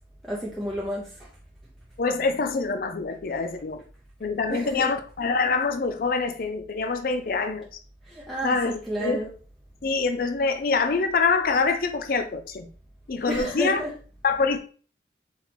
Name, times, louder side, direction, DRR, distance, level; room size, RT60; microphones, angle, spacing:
voice 1, 0.3-1.3 4.5-4.9 8.1-9.3 13.3-13.9, equal, ahead, 0.7 m, -31 dB
voice 2, 2.0-3.8 4.2-7.7 8.4-9.3 9.8-12.7 13.1-13.8 14.2-14.6, left 4 dB, 50° left, 0.4 m, -25 dB
4.0 x 2.8 x 4.4 m
head